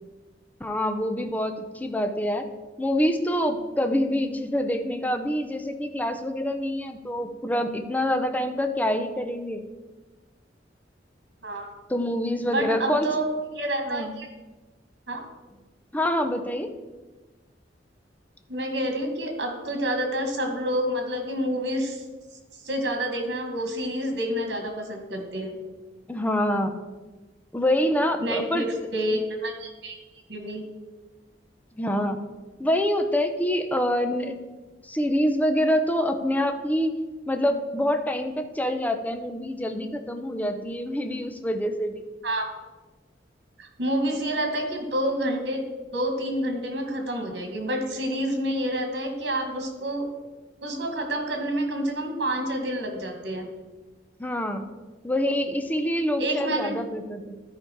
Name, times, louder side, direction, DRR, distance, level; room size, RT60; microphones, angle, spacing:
voice 1, 0.6-2.5 2.8-9.6 11.9-13.1 13.8-14.1 15.9-16.7 26.1-26.7 27.5-28.7 31.7-32.2 32.6-34.4 34.8-36.9 37.3-42.0 54.2-54.6 55.0-57.4, equal, 10° left, 7 dB, 0.6 m, -26 dB
voice 2, 12.4-13.3 13.5-14.3 15.1-15.2 18.5-22.0 22.6-25.5 28.2-30.0 30.3-30.6 42.2-42.5 43.6-45.6 45.9-50.1 50.6-53.5 56.2-56.7, right 1 dB, 70° right, 4 dB, 1.9 m, -28 dB
12.5 x 5.1 x 4.6 m, 1.2 s
head